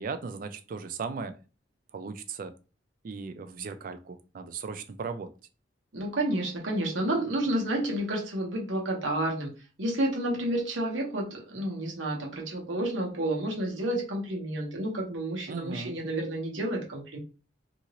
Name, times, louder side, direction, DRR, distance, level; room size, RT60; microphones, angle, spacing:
voice 1, 0.0-1.4 1.9-2.5 3.0-5.3 15.5-16.0, right 5 dB, 45° right, 10 dB, 0.3 m, -37 dB
voice 2, 5.9-9.5 9.8-17.2, right 1 dB, 90° right, 0 dB, 0.9 m, -30 dB
2.8 x 2.6 x 2.9 m, 0.34 s
head